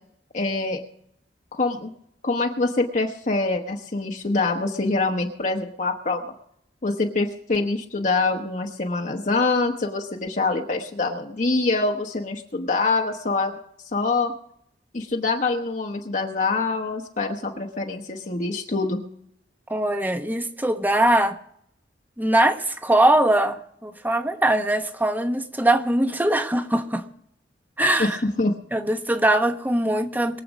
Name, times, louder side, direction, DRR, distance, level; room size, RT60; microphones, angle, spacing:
voice 1, 0.3-0.8 1.5-1.9 2.2-6.2 6.8-13.5 13.9-14.3 14.9-19.0 28.0-28.5, left 3 dB, 45° left, 2 dB, 1.1 m, -25 dB
voice 2, 19.7-21.4 22.2-27.0 27.8-28.2 28.7-30.4, right 1 dB, 10° right, 7 dB, 1.0 m, -21 dB
22.5 x 7.7 x 5.2 m, 0.70 s
head